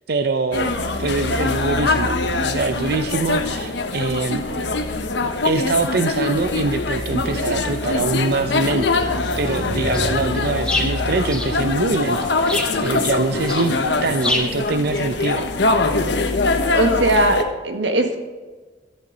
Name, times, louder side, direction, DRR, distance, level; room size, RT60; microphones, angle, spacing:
voice 1, 0.1-0.7 1.0-4.4 5.4-9.1 9.4-13.7 14.0-15.5, right 3 dB, 60° right, 8 dB, 0.6 m, -24 dB
sound 1, 0.5-17.4, left 3 dB, 75° left, 1.2 m, -23 dB
sound 2, 8.8-14.4, left 1 dB, 5° left, 2.1 m, -29 dB
voice 2, 16.7-18.2, right 1 dB, 85° right, 5 dB, 1.7 m, -19 dB
13.5 x 12.5 x 3.9 m, 1.3 s
head